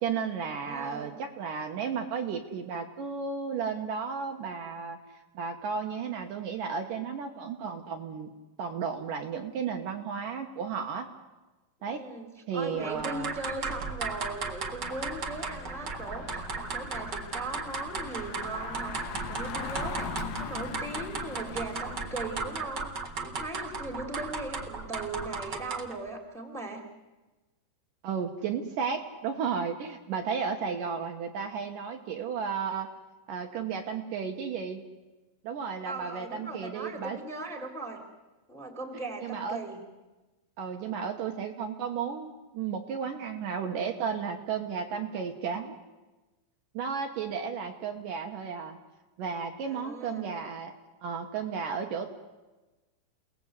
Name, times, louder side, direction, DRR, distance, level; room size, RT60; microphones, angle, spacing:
voice 1, 0.0-5.0 5.3-8.3 8.6-11.1 11.8-12.0 12.5-13.4 28.0-32.9 33.3-34.8 35.4-37.2 39.2-39.6 40.6-45.8 46.7-48.8 49.2-50.7 51.0-52.1, right 6 dB, 65° right, 3 dB, 2.6 m, -33 dB
voice 2, 0.5-1.2 11.8-22.9 23.2-26.8 35.8-38.0 38.5-39.8 49.6-50.3, right 2 dB, ahead, 4 dB, 2.7 m, -39 dB
sound 1, 12.8-26.0, right 4 dB, 40° right, 1.6 m, -36 dB
Engine, 14.8-22.6, left 9 dB, 70° left, 2.8 m, -42 dB
29.0 x 19.0 x 8.1 m, 1.2 s
omnidirectional pair, 4.5 m